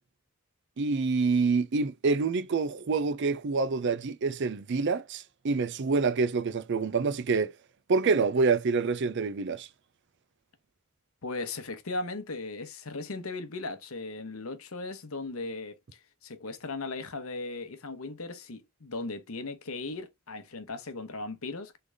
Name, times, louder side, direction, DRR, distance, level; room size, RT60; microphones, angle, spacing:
voice 1, 0.8-7.5 7.9-9.7, right 4 dB, 50° right, 0.5 m, -27 dB
voice 2, 11.2-21.8, left 3 dB, 70° left, 1.0 m, -37 dB
3.9 x 3.3 x 3.4 m
head